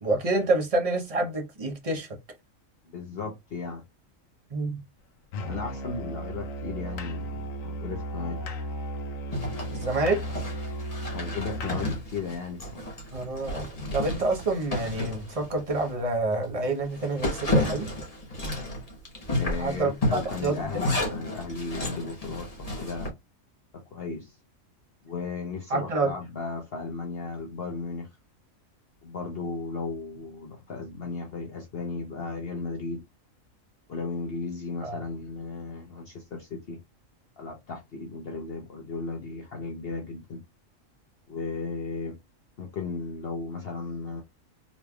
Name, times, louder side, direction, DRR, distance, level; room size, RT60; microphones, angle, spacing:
voice 1, 0.0-2.1 4.5-4.8 9.7-10.2 13.1-17.9 19.6-20.8 25.7-26.1 34.8-35.0, right 2 dB, 30° right, 0.9 m, -28 dB
voice 2, 2.8-3.8 5.4-8.4 11.1-12.9 19.4-23.1 23.7-24.4 25.0-28.1 29.0-33.0 33.9-36.8 37.4-40.4 41.3-42.2 42.6-44.2, left 4 dB, 55° left, 0.9 m, -35 dB
Musical instrument, 5.3-12.1, equal, 80° left, 1.1 m, -35 dB
Zipper (clothing), 9.3-15.9 16.3-16.4 16.8-23.1, left 1 dB, 30° left, 1.2 m, -32 dB
4.0 x 3.2 x 2.2 m
omnidirectional pair, 1.4 m